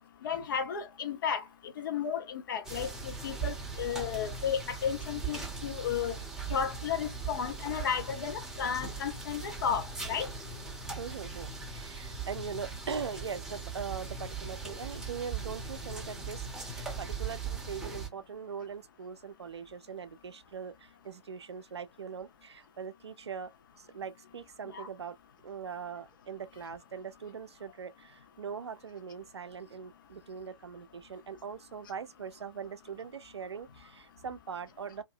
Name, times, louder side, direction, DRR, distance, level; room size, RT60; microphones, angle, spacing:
voice 1, 0.2-1.4 1.8-6.1 6.5-10.3 24.7-24.9, left 7 dB, 45° left, 0.7 m, -33 dB
sound 1, 2.6-18.1, right 4 dB, 5° right, 0.7 m, -39 dB
voice 2, 11.0-23.5 23.8-25.2 25.4-35.0, right 6 dB, 65° right, 0.5 m, -41 dB
2.6 x 2.5 x 2.6 m
figure-of-eight pair, 125°, 15 cm